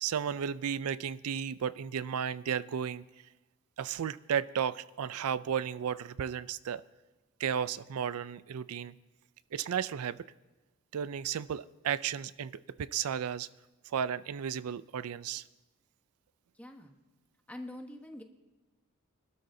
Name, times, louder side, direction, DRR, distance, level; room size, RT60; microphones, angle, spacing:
voice 1, 0.0-3.0 3.8-6.8 7.4-8.9 9.5-10.2 10.9-12.5 12.8-13.5 13.9-15.4, right 8 dB, 80° right, 17 dB, 0.4 m, -33 dB
voice 2, 16.5-17.0 17.5-18.2, left 1 dB, 5° left, 4 dB, 1.0 m, -44 dB
25.5 x 12.5 x 2.7 m, 1.1 s
head